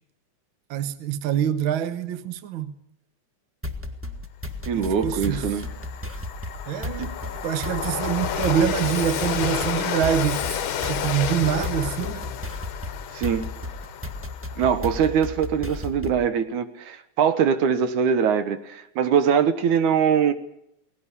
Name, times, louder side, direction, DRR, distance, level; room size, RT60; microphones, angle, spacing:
voice 1, 0.7-2.7 4.7-5.4 6.7-7.2 7.4-12.3, right 9 dB, 60° right, 1.4 m, -25 dB
sound 1, 3.6-16.3, left 2 dB, 15° right, 0.5 m, -34 dB
Train, 4.3-4.4 4.8-15.2, left 9 dB, 60° left, 1.4 m, -31 dB
voice 2, 4.7-5.7 7.0-7.1 13.1-13.5 14.6-20.3, right 7 dB, 75° right, 2.7 m, -22 dB
19.0 x 17.5 x 9.7 m
omnidirectional pair, 3.5 m